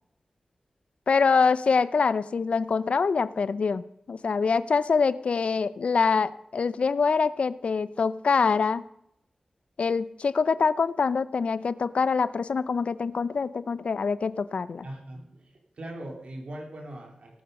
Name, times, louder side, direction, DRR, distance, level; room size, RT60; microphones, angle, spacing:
voice 1, 1.1-3.8 4.1-8.8 9.8-14.8, left 5 dB, 75° left, 16 dB, 0.5 m, -25 dB
voice 2, 14.8-17.4, right 1 dB, 75° right, 2 dB, 2.9 m, -40 dB
18.0 x 8.6 x 5.3 m, 0.80 s
cardioid pair, 55°, 2 cm